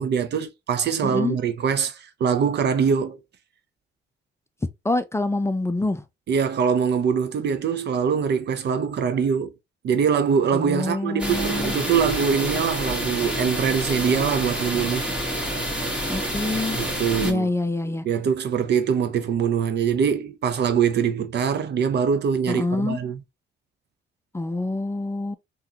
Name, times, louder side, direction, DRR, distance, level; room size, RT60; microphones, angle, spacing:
voice 1, 0.0-3.2 6.3-9.5 9.8-15.1 16.8-17.5 18.0-23.2, right 7 dB, 60° right, 0.7 m, -23 dB
voice 2, 1.0-1.4 4.8-6.0 10.5-11.8 16.1-16.8 17.2-18.0 22.5-23.0 24.3-25.4, left 2 dB, 15° left, 0.5 m, -26 dB
sound 1, 11.2-17.3, equal, 5° right, 1.7 m, -28 dB
3.6 x 3.0 x 2.8 m
cardioid pair, 90°, 20 cm